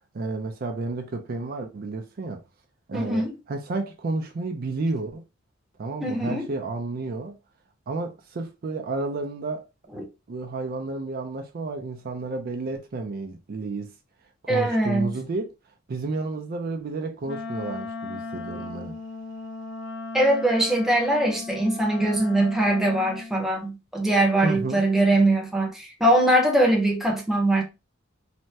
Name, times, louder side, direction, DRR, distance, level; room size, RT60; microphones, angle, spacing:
voice 1, 0.1-2.4 2.9-5.2 5.8-7.4 7.9-9.6 10.3-13.9 14.4-15.5 15.9-19.0 24.4-24.8, right 3 dB, 50° right, 0.4 m, -31 dB
voice 2, 2.9-3.3 6.0-6.5 10.0-10.1 14.5-15.2 20.1-27.6, right 1 dB, ahead, 0.7 m, -22 dB
Wind instrument woodwind instrument, 17.2-23.3, left 3 dB, 65° left, 0.5 m, -36 dB
3.3 x 2.1 x 2.7 m
head